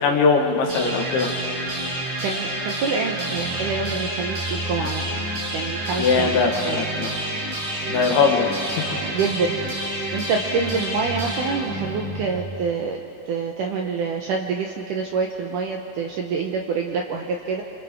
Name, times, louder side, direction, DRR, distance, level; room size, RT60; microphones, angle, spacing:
voice 1, 0.0-1.3 6.0-7.1 7.9-8.9, left 5 dB, 75° left, 2 dB, 3.3 m, -21 dB
sound 1, 0.7-12.6, right 1 dB, 55° right, 7.4 m, -29 dB
voice 2, 2.2-5.3 5.5-6.8 9.0-9.6 10.1-13.0 13.3-17.6, right 5 dB, 75° right, 1 dB, 2.0 m, -26 dB
29.0 x 26.5 x 3.7 m, 2.8 s
omnidirectional pair, 4.7 m